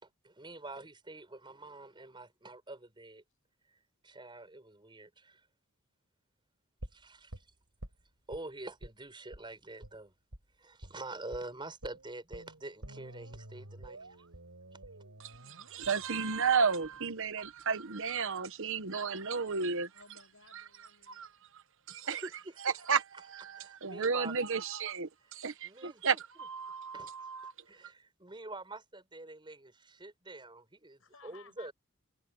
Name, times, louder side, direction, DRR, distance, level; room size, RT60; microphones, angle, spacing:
voice 1, 0.0-3.2 3.7-5.4 6.9-7.4 8.3-10.1 10.6-14.2 22.0-22.8 23.5-24.5 25.6-26.0 26.9-27.3 27.7-31.7, right 2 dB, 20° right, 5.5 m, -46 dB
sound 1, 6.8-8.4 8.8-9.0 9.3-9.5 9.8-10.0 10.3-10.5 10.8-11.0 11.3-11.5 11.8-17.8 18.1-18.2, right 1 dB, 90° right, 4.5 m, -50 dB
voice 2, 15.2-19.9 20.5-20.6 21.1-21.3 21.9-22.2 22.9-23.0 23.3-27.5, right 5 dB, 60° right, 1.2 m, -33 dB
voice 3, 19.9-21.5 31.0-31.7, left 5 dB, 65° left, 7.8 m, -58 dB
head